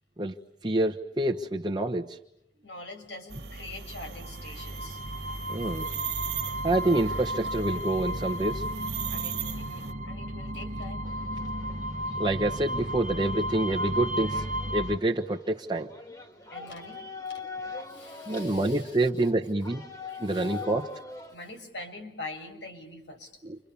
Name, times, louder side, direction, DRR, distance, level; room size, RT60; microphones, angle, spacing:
voice 1, 0.6-2.2 5.5-5.9 6.6-8.6 12.2-15.9 18.3-19.8 20.2-20.9 23.4-23.6, right 2 dB, 25° right, 0 dB, 1.2 m, -27 dB
voice 2, 2.6-5.0 9.1-11.1 16.5-17.4 17.9-19.1 20.2-20.6 21.3-23.4, left 2 dB, 80° left, 5 dB, 6.6 m, -44 dB
sound 1, 3.3-9.9, right 7 dB, 65° right, 1.8 m, -38 dB
sound 2, 3.9-15.0, equal, 45° right, 1.3 m, -34 dB
sound 3, 11.0-21.3, left 4 dB, 20° left, 2.3 m, -43 dB
29.5 x 26.5 x 7.0 m, 0.84 s
head